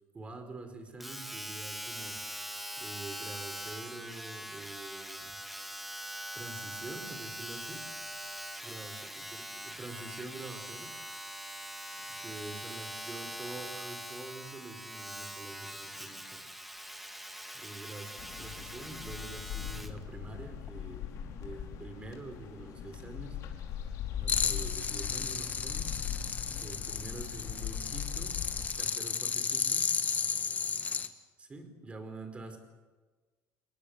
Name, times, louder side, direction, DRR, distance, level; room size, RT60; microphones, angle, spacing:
voice 1, 0.1-2.2 2.8-5.3 6.3-7.9 8.6-11.0 12.1-16.5 17.5-18.1 18.4-23.4 24.2-26.0 26.6-28.4 28.8-29.9 31.4-32.6, right 2 dB, 20° right, 7 dB, 4.9 m, -46 dB
Domestic sounds home sounds, 1.0-20.0 20.7-20.8, equal, ahead, 1.9 m, -42 dB
sound 1, 18.2-28.7, left 9 dB, 65° left, 4.9 m, -40 dB
sound 2, 24.3-31.1, left 6 dB, 25° left, 1.8 m, -33 dB
29.5 x 21.5 x 8.2 m, 1.3 s
cardioid pair, 140°, 6 cm